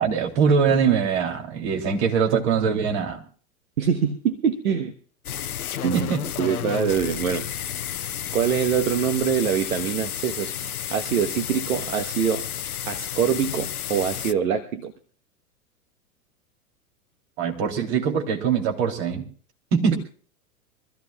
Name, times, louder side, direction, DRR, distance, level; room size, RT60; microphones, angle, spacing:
voice 1, 0.0-3.2 5.9-6.2 17.4-19.2 19.7-20.0, right 6 dB, 50° right, 2 dB, 3.2 m, -22 dB
voice 2, 3.8-4.9 5.8-6.1 6.4-7.5 8.3-10.6 10.9-12.5 12.9-14.9 19.9-20.0, right 7 dB, 70° right, 7 dB, 1.4 m, -24 dB
sound 1, 5.2-14.3, left 10 dB, 85° left, 0.7 m, -31 dB
24.5 x 14.5 x 2.3 m, 0.43 s
hypercardioid pair, 100°, 43 cm